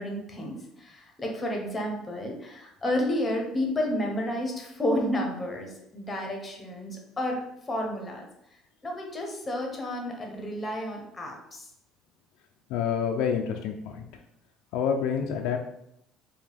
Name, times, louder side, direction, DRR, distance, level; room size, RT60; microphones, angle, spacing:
voice 1, 0.0-7.4 7.7-8.3 8.8-11.7, left 1 dB, 15° left, 1 dB, 0.8 m, -31 dB
voice 2, 12.7-14.1 14.7-15.6, left 7 dB, 80° left, 3 dB, 0.4 m, -27 dB
4.8 x 2.2 x 3.4 m, 0.77 s
cardioid pair, 160°, 0 cm